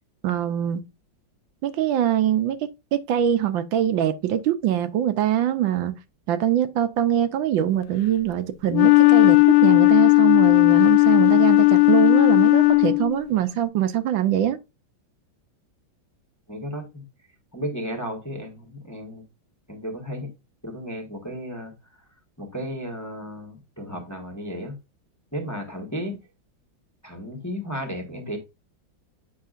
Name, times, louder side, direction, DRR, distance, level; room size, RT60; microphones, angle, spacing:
voice 1, 0.2-0.8 1.6-2.6 2.9-6.0 6.3-14.6, right 10 dB, 80° right, 1.5 m, -23 dB
Wind instrument woodwind instrument, 8.7-13.2, left 25 dB, 85° left, 1.4 m, -15 dB
voice 2, 16.5-17.1 17.5-19.2 19.7-20.3 20.6-21.7 22.4-24.8 25.3-26.2 27.0-28.4, equal, 10° left, 1.2 m, -33 dB
8.2 x 5.9 x 2.5 m
omnidirectional pair, 2.1 m